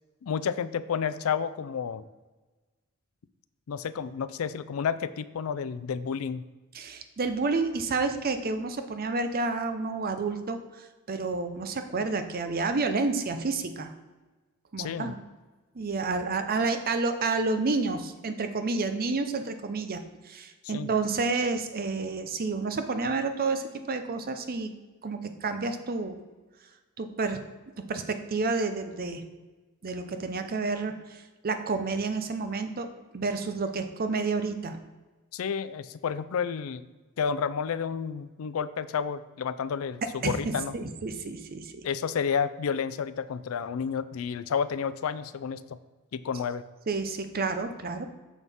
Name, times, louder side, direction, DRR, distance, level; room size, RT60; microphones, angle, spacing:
voice 1, 0.2-2.1 3.7-6.4 14.8-15.1 20.7-20.9 35.3-36.8 37.2-40.7 41.8-45.8 46.1-46.6, left 6 dB, 70° left, 15 dB, 0.4 m, -31 dB
voice 2, 6.7-13.9 14.7-15.2 15.7-24.7 25.0-26.1 27.0-27.4 27.9-29.2 29.8-32.9 33.1-34.8 40.2-41.8 46.9-48.1, right 3 dB, 45° right, 8 dB, 0.6 m, -30 dB
7.2 x 6.2 x 3.5 m, 1.2 s
head